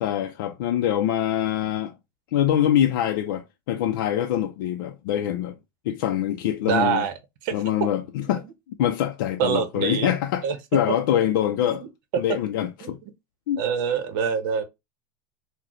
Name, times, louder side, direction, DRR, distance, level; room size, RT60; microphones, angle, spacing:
voice 1, 0.0-1.9 2.3-5.6 5.9-7.0 7.5-8.4 8.8-10.5 10.7-11.8 12.2-13.0 13.5-13.6, left 11 dB, 80° left, 0.4 m, -24 dB
voice 2, 6.7-7.1 7.4-7.5 9.4-10.1 10.4-10.6 12.8-12.9 13.6-14.6, right 7 dB, 65° right, 0.8 m, -24 dB
3.9 x 2.1 x 2.9 m
supercardioid pair, 135°, 11 cm